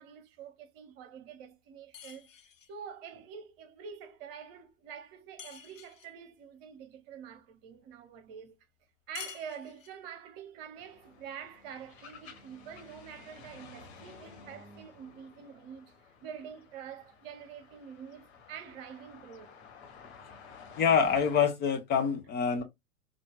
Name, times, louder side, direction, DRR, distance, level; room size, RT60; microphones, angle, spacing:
voice 1, 0.0-2.3 2.7-8.6 9.1-19.6, right 7 dB, 45° right, 1.1 m, -46 dB
sound 1, 1.9-2.8 5.4-6.2 9.1-10.1, left 8 dB, 70° left, 0.9 m, -47 dB
sound 2, 10.7-21.4, left 5 dB, 50° left, 1.4 m, -53 dB
voice 2, 20.8-22.6, left 6 dB, 25° left, 0.8 m, -26 dB
5.1 x 2.5 x 2.3 m
figure-of-eight pair, 95°, 40 cm